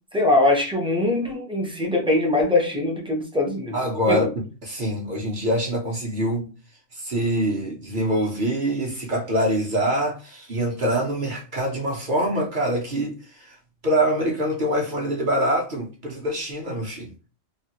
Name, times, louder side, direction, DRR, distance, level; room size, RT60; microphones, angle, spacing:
voice 1, 0.1-3.7 4.1-4.2, left 2 dB, 5° right, 0.4 m, -22 dB
voice 2, 3.7-4.2 4.6-6.5 6.9-13.6 13.8-17.1, right 1 dB, 45° right, 0.8 m, -24 dB
3.2 x 2.3 x 2.8 m
omnidirectional pair, 1.4 m